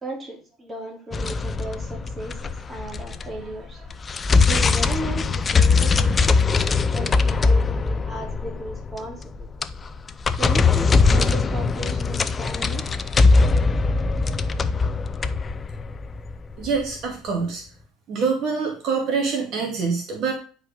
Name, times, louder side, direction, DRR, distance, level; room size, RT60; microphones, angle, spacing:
voice 1, 0.0-4.0 4.5-6.2 6.5-9.5 10.4-13.0, right 1 dB, 15° right, 0 dB, 2.9 m, -35 dB
sound 1, 1.1-3.5 3.8-16.8, left 4 dB, 20° left, 0.5 m, -21 dB
voice 2, 16.6-17.6 18.1-20.3, right 5 dB, 50° right, 2 dB, 2.3 m, -25 dB
9.8 x 4.9 x 5.2 m, 0.39 s
cardioid pair, 140°, 0 cm